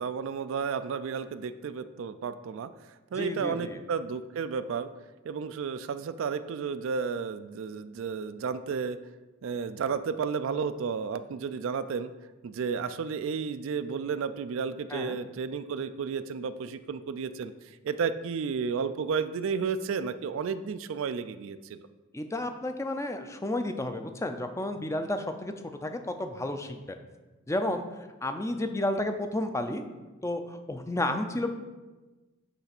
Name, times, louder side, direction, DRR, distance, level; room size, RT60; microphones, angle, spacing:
voice 1, 0.0-2.7 3.1-4.9 5.2-9.0 9.4-12.1 12.4-17.5 17.8-21.8, right 6 dB, 60° right, 12 dB, 0.3 m, -32 dB
voice 2, 3.2-3.8 14.9-15.2 22.1-25.5 25.8-27.0 27.5-27.8 28.2-29.8 30.2-31.5, left 1 dB, 15° left, 7 dB, 0.4 m, -31 dB
8.1 x 3.3 x 5.9 m, 1.2 s
head